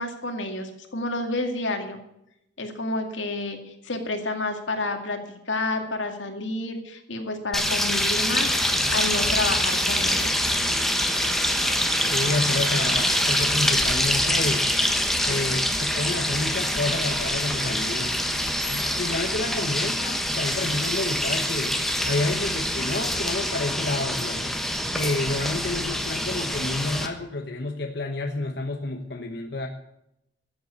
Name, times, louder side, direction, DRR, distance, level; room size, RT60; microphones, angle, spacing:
voice 1, 0.0-2.0 2.6-5.2 5.5-10.4, left 2 dB, 85° left, 5 dB, 2.2 m, -30 dB
sound 1, 7.5-27.1, left 1 dB, ahead, 1.2 m, -25 dB
sound 2, 8.4-22.9, right 4 dB, 55° right, 1.4 m, -41 dB
voice 2, 12.1-14.7 15.2-18.1 18.7-21.8 22.0-24.5 24.9-29.7, left 2 dB, 60° left, 3 dB, 1.1 m, -29 dB
13.0 x 7.9 x 8.1 m, 0.81 s
head